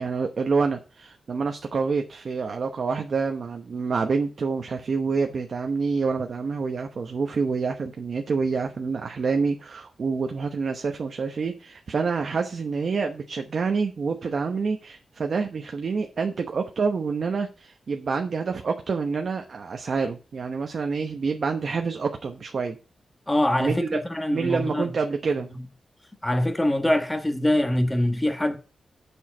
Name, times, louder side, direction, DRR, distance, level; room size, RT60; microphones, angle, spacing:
voice 1, 0.0-22.8 23.6-24.0 24.3-25.5, right 4 dB, 50° right, 0.9 m, -27 dB
voice 2, 23.3-24.9 25.5-25.6 26.2-28.6, left 1 dB, 10° left, 1.5 m, -24 dB
7.7 x 6.4 x 6.0 m
wide cardioid pair, 150°, 0 cm